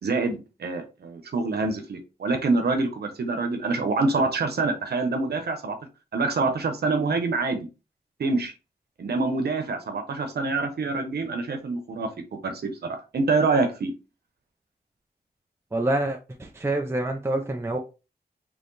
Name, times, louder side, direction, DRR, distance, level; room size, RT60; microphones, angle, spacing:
voice 1, 0.0-5.8 6.1-7.7 8.2-8.5 9.0-12.1 12.4-13.9, right 3 dB, 85° right, 0.9 m, -26 dB
voice 2, 15.7-17.8, right 2 dB, 15° right, 0.5 m, -27 dB
4.5 x 3.1 x 3.2 m
wide cardioid pair, 145°, 16 cm